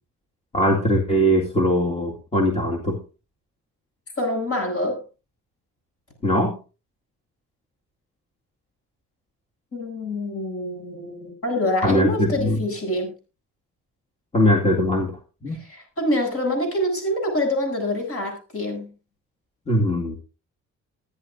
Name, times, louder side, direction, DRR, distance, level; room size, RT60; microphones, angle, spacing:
voice 1, 0.5-3.0 6.2-6.6 11.8-12.6 14.3-15.6 19.7-20.2, equal, 20° left, 0 dB, 2.1 m, -21 dB
voice 2, 4.2-5.0 9.7-13.1 15.5-18.9, left 1 dB, 50° left, 3 dB, 8.0 m, -26 dB
21.0 x 10.5 x 2.7 m, 0.31 s
cardioid pair, 90°, 30 cm